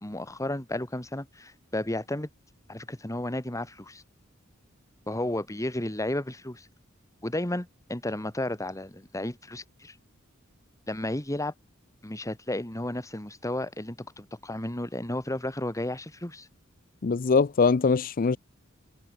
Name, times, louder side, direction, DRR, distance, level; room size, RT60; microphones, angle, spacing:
voice 1, 0.0-2.3 2.7-4.0 5.1-6.7 7.2-9.9 10.9-11.5 12.0-16.5, left 1 dB, 15° left, 2.0 m, -33 dB
voice 2, 17.0-18.4, left 4 dB, 40° left, 0.5 m, -22 dB
head